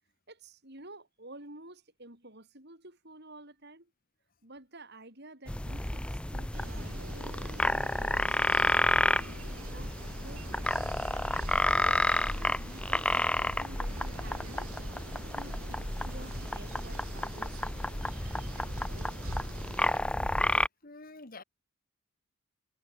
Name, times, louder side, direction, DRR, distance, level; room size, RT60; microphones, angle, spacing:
voice 1, 0.3-3.9 4.4-9.1 9.6-11.0 11.5-15.5 16.0-17.6 18.5-19.1, right 2 dB, 50° right, 5.1 m, -51 dB
sound 1, 5.5-20.7, left 1 dB, 5° left, 0.4 m, -31 dB
sound 2, 6.5-20.0, right 3 dB, 75° right, 3.2 m, -47 dB
voice 2, 20.8-21.4, left 3 dB, 40° left, 1.8 m, -48 dB
head